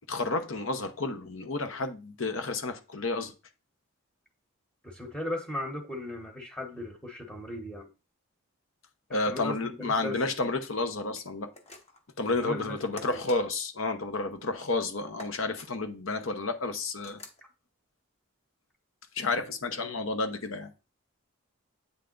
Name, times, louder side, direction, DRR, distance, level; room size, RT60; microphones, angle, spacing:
voice 1, 0.1-3.3 9.1-11.5 12.2-17.2 19.1-20.7, left 3 dB, 65° left, 0.9 m, -31 dB
voice 2, 4.8-7.9 9.1-10.5 12.3-12.8 13.1-13.2, left 1 dB, 5° left, 1.0 m, -37 dB
sound 1, 11.5-12.1 13.0-13.4 15.2-15.7 17.0-17.4, left 3 dB, 30° left, 0.9 m, -46 dB
8.3 x 3.4 x 3.8 m
head